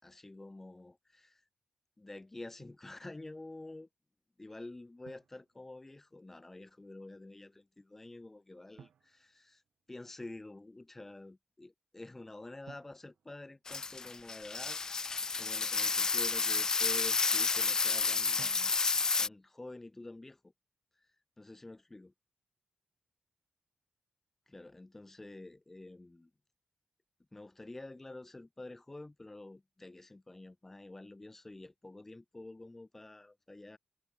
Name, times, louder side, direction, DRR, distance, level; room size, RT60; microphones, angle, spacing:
voice 1, 0.0-1.4 2.0-3.9 4.4-9.6 9.9-14.8 15.4-18.7 19.2-20.5 20.9-22.1 24.5-26.3 27.3-33.8, left 2 dB, 15° left, 4.9 m, -49 dB
Drum, 2.6-2.9 5.0-6.2 8.8-10.2 12.7-14.4 18.4-19.3, right 8 dB, 85° right, 4.3 m, -60 dB
sound 1, 13.7-19.3, left 4 dB, 30° left, 0.8 m, -31 dB
wide cardioid pair, 160°, 2 cm